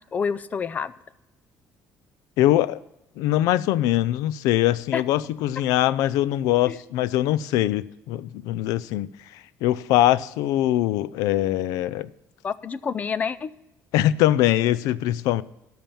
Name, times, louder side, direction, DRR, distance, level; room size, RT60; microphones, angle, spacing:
voice 1, 0.1-0.9 4.9-5.0 6.7-6.8 12.4-13.5, left 6 dB, 25° left, 0.4 m, -28 dB
voice 2, 2.4-2.8 3.2-12.1 13.9-15.4, left 14 dB, 90° left, 0.4 m, -22 dB
12.5 x 6.0 x 7.1 m
cardioid pair, 140°, 6 cm